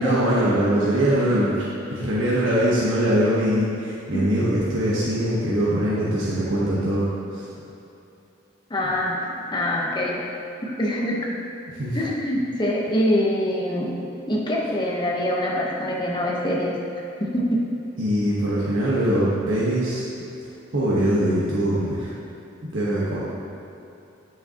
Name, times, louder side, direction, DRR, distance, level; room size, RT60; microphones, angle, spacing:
voice 1, 0.0-7.1 7.3-7.4 11.8-12.0 18.0-20.0 20.7-22.1 22.6-23.2, right 1 dB, 85° right, -8 dB, 1.2 m, -22 dB
voice 2, 8.7-10.2 10.6-11.2 11.9-13.9 14.3-16.8 17.3-17.6, equal, 25° left, -3 dB, 0.9 m, -24 dB
9.4 x 5.6 x 2.9 m, 2.9 s
head